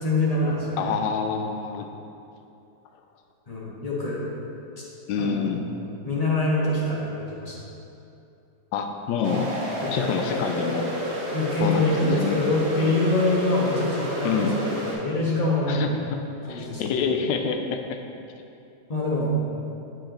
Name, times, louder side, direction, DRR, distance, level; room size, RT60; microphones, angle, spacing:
voice 1, 0.0-1.0 3.5-4.2 5.2-5.5 5.8-7.5 9.8-9.9 11.3-15.9 16.5-16.8 18.9-19.3, left 2 dB, 25° left, -6 dB, 1.1 m, -25 dB
voice 2, 0.8-1.9 5.1-5.6 8.7-9.5 9.9-10.9 11.6-12.4 14.2-14.5 15.7-16.2 16.5-18.0, left 6 dB, 75° left, 5 dB, 1.2 m, -26 dB
sound 1, 9.2-14.9, right 1 dB, 40° right, 1.3 m, -30 dB
8.5 x 5.0 x 3.8 m, 2.7 s
omnidirectional pair, 2.1 m